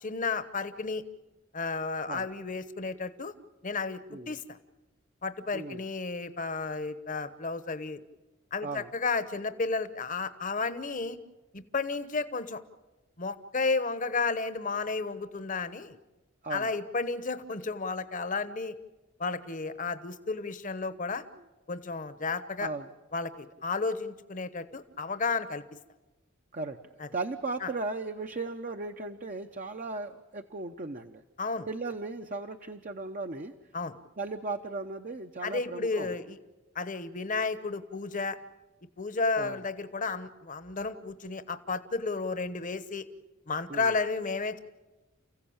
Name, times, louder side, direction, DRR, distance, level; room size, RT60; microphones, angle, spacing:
voice 1, 0.0-1.0 1.5-3.3 3.6-4.0 4.3-4.6 5.2-8.0 8.5-11.2 11.5-12.6 13.2-16.0 16.5-18.7 19.2-21.2 21.7-22.7 23.1-25.6 27.0-27.1 27.6-27.7 31.4-31.7 33.7-33.9 35.4-36.4 36.7-38.4 39.0-43.1 43.5-44.6, left 4 dB, 40° left, 12 dB, 1.0 m, -32 dB
voice 2, 5.5-5.8 8.6-8.9 16.4-16.7 22.6-22.9 26.5-26.8 27.1-31.2 31.7-33.5 34.2-36.2 39.4-39.6 43.7-43.9, right 3 dB, 40° right, 5 dB, 0.8 m, -36 dB
29.5 x 15.5 x 8.7 m, 1.1 s
head